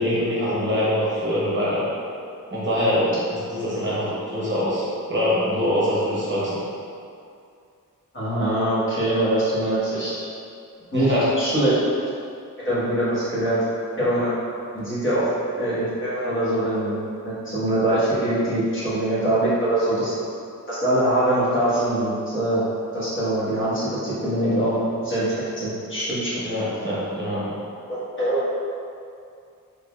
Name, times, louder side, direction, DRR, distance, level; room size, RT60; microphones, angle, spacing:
voice 1, 0.0-1.8 2.5-6.6 10.9-11.2 26.4-27.6, equal, 35° right, -9 dB, 0.8 m, -24 dB
voice 2, 8.1-10.2 10.9-11.8 12.6-13.6 14.0-14.3 14.7-15.3 15.5-17.0 17.2-20.1 20.7-22.6 22.9-25.3 25.6-26.4 27.9-28.4, right 1 dB, 35° left, -11 dB, 1.2 m, -23 dB
3.7 x 3.4 x 2.2 m, 2.4 s
wide cardioid pair, 140°, 34 cm